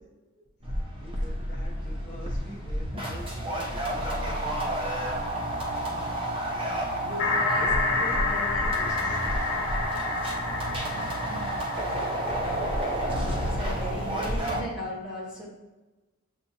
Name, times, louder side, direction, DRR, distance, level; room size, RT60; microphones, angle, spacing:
sound 1, 0.6-14.6, right 1 dB, 25° right, 0.7 m, -30 dB
voice 1, 0.7-4.9 5.8-6.3 7.2-9.5 14.7-15.0, equal, 35° left, -5 dB, 1.0 m, -47 dB
voice 2, 1.8-2.2 6.9-8.6 8.9-9.5 10.9-11.8 12.9-15.5, equal, 5° right, -7 dB, 1.0 m, -39 dB
sound 2, 7.2-12.9, left 3 dB, 85° left, 0.5 m, -29 dB
6.9 x 2.4 x 2.7 m, 1.1 s
head